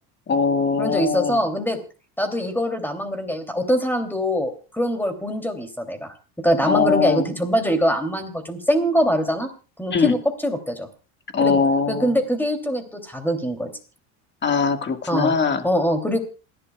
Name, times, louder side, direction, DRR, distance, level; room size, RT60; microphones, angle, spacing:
voice 1, 0.3-1.4 6.7-7.2 9.9-10.2 11.3-12.1 14.4-15.6, left 5 dB, 25° left, 7 dB, 1.8 m, -21 dB
voice 2, 0.8-1.8 2.2-9.5 9.8-10.9 11.4-11.6 11.9-13.7 15.1-15.3 15.6-16.2, equal, 5° left, 6 dB, 2.9 m, -23 dB
27.5 x 11.5 x 2.4 m, 0.34 s
supercardioid pair, 105°, 39 cm